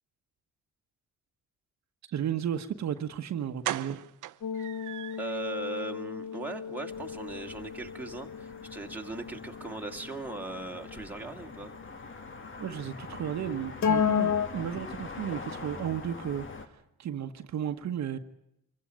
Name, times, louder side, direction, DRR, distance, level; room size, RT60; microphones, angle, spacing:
voice 1, 2.1-4.0 12.6-18.2, right 9 dB, 65° right, 1.3 m, -34 dB
sound 1, 3.0-3.1 3.6-5.4 5.8-5.9 6.2-6.4 6.6-6.7, right 15 dB, 85° right, 0.9 m, -37 dB
sound 2, 4.4-10.7 13.8-14.5, left 7 dB, 70° left, 1.9 m, -32 dB
voice 2, 5.2-11.7, right 3 dB, 5° right, 2.3 m, -39 dB
sound 3, 6.9-16.7, left 4 dB, 40° left, 2.5 m, -44 dB
25.0 x 15.5 x 9.0 m
cardioid pair, 90°, 30 cm